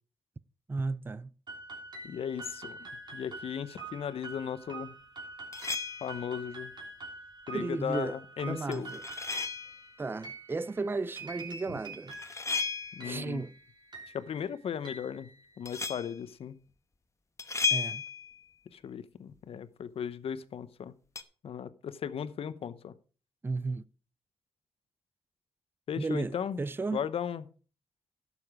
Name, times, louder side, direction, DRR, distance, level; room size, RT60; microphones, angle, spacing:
voice 1, 0.7-1.3 7.5-8.2 8.4-9.0 10.0-12.2 13.0-13.5 17.7-18.0 23.4-23.8 26.0-27.0, right 3 dB, 20° right, 0.4 m, -34 dB
sound 1, 1.5-15.9, right 3 dB, 45° right, 3.1 m, -46 dB
voice 2, 2.0-2.8 3.1-4.9 6.0-6.7 7.5-8.9 12.9-13.4 14.1-15.3 15.6-16.6 18.7-20.9 21.4-22.9 25.9-26.6 26.9-27.4, left 8 dB, 65° left, 0.8 m, -36 dB
sound 2, 5.5-6.3 8.7-9.9 11.9-13.2 15.7-16.2 17.4-18.4 21.2-21.3, left 5 dB, 30° left, 1.0 m, -34 dB
12.0 x 7.0 x 4.9 m
cardioid pair, 65°, 11 cm